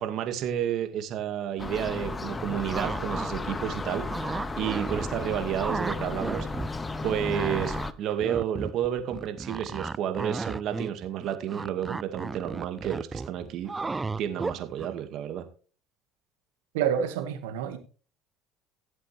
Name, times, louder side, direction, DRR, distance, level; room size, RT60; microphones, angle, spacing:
voice 1, 0.0-6.5 7.0-13.7 14.2-15.4, right 10 dB, 60° right, 2.1 m, -31 dB
sound 1, 1.6-7.9, left 3 dB, 20° left, 1.0 m, -34 dB
sound 2, 2.5-3.3 3.7-5.3 5.6-6.7 7.0-14.9, right 3 dB, 20° right, 0.4 m, -34 dB
voice 2, 16.7-17.8, right 8 dB, 85° right, 2.0 m, -28 dB
16.5 x 7.7 x 3.4 m
supercardioid pair, 75°, 0 cm